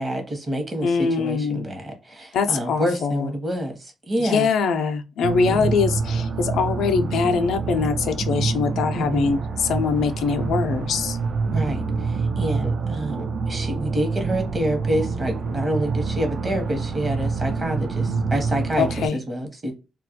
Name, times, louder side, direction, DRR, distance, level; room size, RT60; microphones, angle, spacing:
voice 1, 0.0-4.5 5.5-5.7 8.9-9.3 11.5-19.7, right 1 dB, 30° right, 0.9 m, -27 dB
voice 2, 0.8-1.7 2.3-3.3 4.2-11.2 18.8-19.2, left 5 dB, 85° left, 0.4 m, -23 dB
sound 1, 5.2-19.1, right 4 dB, 55° right, 0.4 m, -26 dB
2.3 x 2.2 x 2.7 m
cardioid pair, 115°, 0 cm